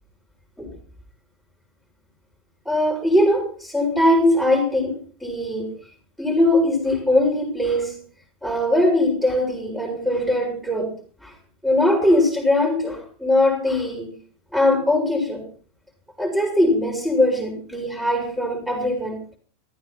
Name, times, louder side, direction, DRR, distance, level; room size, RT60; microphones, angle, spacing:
voice 1, 2.7-5.7 6.2-8.0 8.4-10.9 11.2-11.3 11.6-14.1 14.5-15.4 16.2-19.2, left 1 dB, ahead, 2 dB, 5.4 m, -21 dB
14.5 x 13.5 x 5.9 m, 0.43 s
figure-of-eight pair, 90°, 0 cm